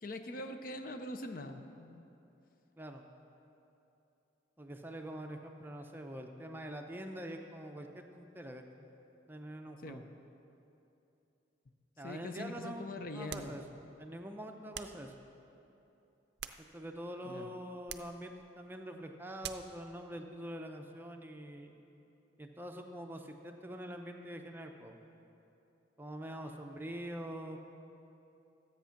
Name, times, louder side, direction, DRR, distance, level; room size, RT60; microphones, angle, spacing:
voice 1, 0.0-2.0 9.8-10.0 12.0-13.6 17.2-17.5, left 2 dB, 50° left, 7 dB, 0.6 m, -43 dB
voice 2, 4.6-8.9 9.3-10.0 12.0-13.6 14.0-15.1 16.6-21.8 22.4-25.0 26.0-27.6, equal, 10° right, 4 dB, 0.6 m, -45 dB
sound 1, 13.3-13.6 14.7-15.1 16.1-17.0 17.9-18.2 19.4-19.8, right 9 dB, 60° right, 0.5 m, -45 dB
13.0 x 8.2 x 5.8 m, 2.9 s
head